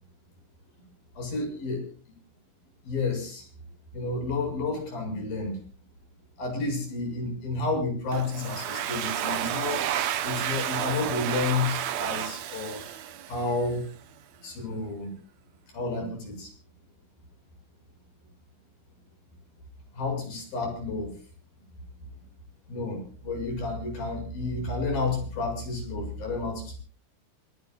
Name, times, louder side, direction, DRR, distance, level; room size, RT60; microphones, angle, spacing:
voice 1, 1.2-1.9 2.8-3.5 3.9-5.6 6.4-9.9 10.2-12.9 13.3-13.8 14.4-15.1 15.7-16.5 19.9-21.1 22.7-26.8, left 3 dB, 65° left, 4 dB, 9.0 m, -31 dB
Domestic sounds home sounds, 8.1-13.7, right 11 dB, 85° right, 1.5 m, -31 dB
27.5 x 18.5 x 2.4 m, 0.37 s
omnidirectional pair, 4.5 m